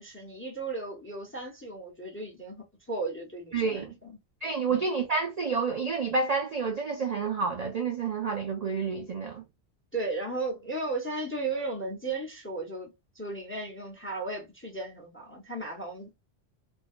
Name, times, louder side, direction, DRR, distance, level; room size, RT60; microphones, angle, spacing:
voice 1, 0.0-4.2 4.7-4.8 9.9-16.2, right 2 dB, 15° left, 0.5 m, -35 dB
voice 2, 3.5-3.9 4.4-9.4, right 4 dB, 55° right, 0.4 m, -29 dB
2.5 x 2.2 x 2.4 m
omnidirectional pair, 1.2 m